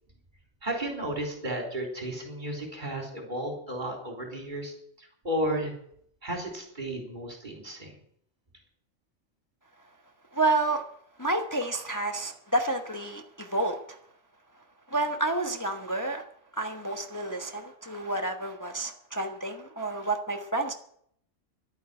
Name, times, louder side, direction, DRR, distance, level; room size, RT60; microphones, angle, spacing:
voice 1, 0.6-5.7 6.2-8.0, right 1 dB, 35° right, 1 dB, 3.9 m, -33 dB
voice 2, 10.3-10.8 11.2-14.0 14.9-16.2 16.5-20.7, right 2 dB, 15° left, 5 dB, 1.1 m, -29 dB
12.0 x 9.5 x 9.6 m, 0.66 s
omnidirectional pair, 1.3 m